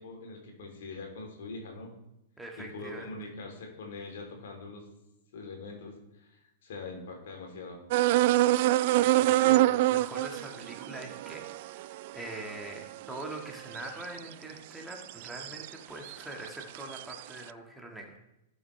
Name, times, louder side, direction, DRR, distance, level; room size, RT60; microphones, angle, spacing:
voice 1, 0.0-1.9 2.6-4.8 5.3-7.8, left 3 dB, 55° left, 2 dB, 3.0 m, -43 dB
voice 2, 2.4-3.1 8.9-18.2, right 1 dB, 5° right, 1 dB, 1.7 m, -43 dB
sound 1, 7.9-14.3 14.9-15.7 16.1-17.2, right 16 dB, 45° right, 0.3 m, -26 dB
18.0 x 6.4 x 3.2 m, 0.89 s
figure-of-eight pair, 100°, 0 cm